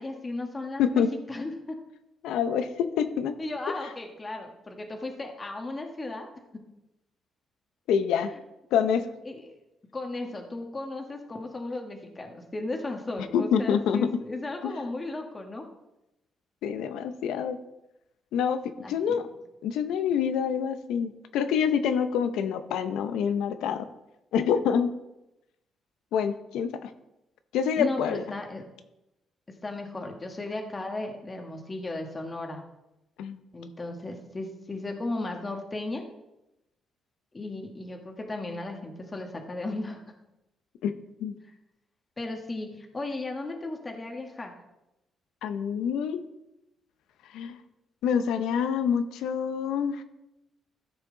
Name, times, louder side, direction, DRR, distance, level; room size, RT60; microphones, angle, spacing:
voice 1, 0.0-1.0 1.3-1.8 3.4-6.3 9.2-9.6 9.9-15.6 18.8-19.2 27.8-28.7 29.6-32.6 33.5-36.0 37.3-40.1 42.2-44.5, left 2 dB, 25° left, 3 dB, 1.5 m, -35 dB
voice 2, 0.8-1.1 2.2-3.3 7.9-8.3 8.7-9.1 13.3-14.2 14.6-14.7 16.6-17.6 18.3-19.3 19.6-23.9 24.3-24.9 26.1-26.9 27.5-28.2 33.2-33.4 40.8-40.9 41.2-41.3 45.4-46.2 47.3-47.6 48.0-50.0, left 7 dB, 85° left, 10 dB, 0.7 m, -26 dB
13.5 x 5.9 x 3.9 m, 0.91 s
cardioid pair, 90°, 0 cm